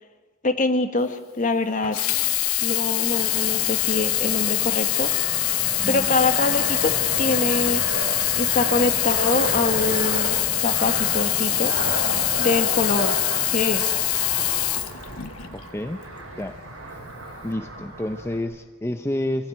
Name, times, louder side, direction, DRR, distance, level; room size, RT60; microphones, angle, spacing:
voice 1, 0.4-2.0 2.6-5.1 5.9-6.9 7.2-7.8 8.3-10.4 10.6-11.7 12.4-13.1 13.5-13.8, left 3 dB, 40° left, 7 dB, 1.7 m, -24 dB
Sink (filling or washing), 1.8-15.6 16.3-16.4, left 16 dB, 85° left, 1.0 m, -24 dB
Fixed-wing aircraft airplane, 3.1-18.4, right 2 dB, 80° right, 6.3 m, -32 dB
voice 2, 15.5-16.0 16.4-16.5 17.4-19.5, left 1 dB, 10° left, 7 dB, 0.7 m, -29 dB
25.0 x 16.5 x 9.3 m, 1.4 s
head